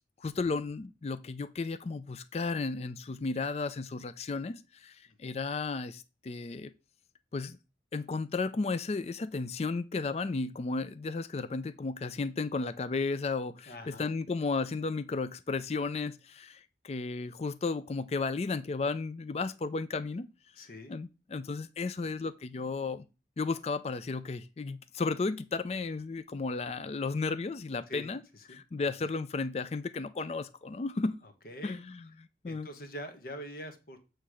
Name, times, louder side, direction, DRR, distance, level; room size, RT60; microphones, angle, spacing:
voice 1, 0.2-6.7 7.3-7.6 7.9-20.3 20.6-23.1 23.4-28.2 28.5-31.2 31.6-32.0 32.4-32.7, left 4 dB, 35° left, 0.4 m, -34 dB
voice 2, 5.1-5.4 13.7-14.1 20.5-20.9 27.9-28.6 31.2-31.8 32.4-34.0, equal, 50° left, 1.1 m, -45 dB
8.3 x 3.2 x 6.1 m
head